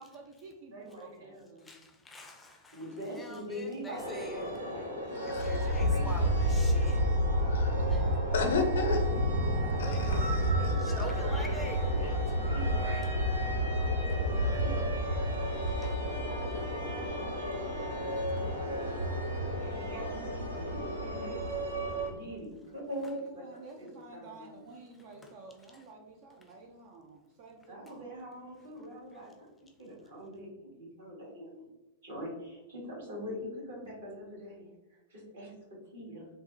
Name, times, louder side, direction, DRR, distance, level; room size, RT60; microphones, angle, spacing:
voice 1, 0.0-1.4 12.5-12.8 23.1-28.1, right 3 dB, 50° right, 2 dB, 0.3 m, -51 dB
voice 2, 0.7-1.7 2.7-6.3 9.3-13.1 14.4-15.1 16.1-18.1 18.4-18.5 19.5-21.4 22.0-24.7 27.7-31.7 32.0-36.3, equal, 65° right, -4 dB, 1.4 m, -44 dB
voice 3, 1.6-4.7 5.1-7.1 7.9-8.3 9.8-12.2 14.0-14.2 15.6-16.1 18.2-18.4 22.1-22.2 25.0-25.4 25.7-25.9 26.4-26.6 29.1-29.3, left 1 dB, 10° left, 2 dB, 0.4 m, -46 dB
sound 1, 3.9-22.1, equal, 85° right, 0.6 m, -30 dB
voice 4, 5.2-5.7 7.4-7.8 8.3-9.2 9.8-10.2 10.6-10.7, left 3 dB, 65° left, 4 dB, 0.5 m, -32 dB
3.3 x 2.0 x 2.5 m, 1.1 s
figure-of-eight pair, 100°, 0 cm